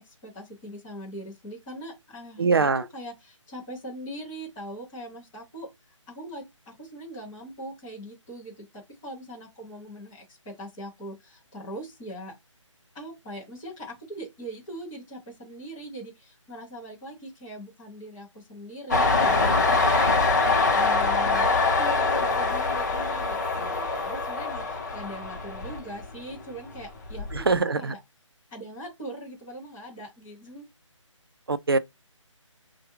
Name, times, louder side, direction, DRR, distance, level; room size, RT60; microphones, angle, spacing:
voice 1, 0.0-5.7 6.1-12.3 12.9-28.0 28.5-30.7, equal, 5° left, 0.6 m, -41 dB
voice 2, 2.4-2.8 27.3-27.9 31.5-31.8, right 4 dB, 50° right, 0.4 m, -23 dB
Train, 18.9-26.3 26.7-27.5, left 3 dB, 35° left, 0.9 m, -24 dB
3.5 x 2.2 x 2.9 m
hypercardioid pair, 175°, 17 cm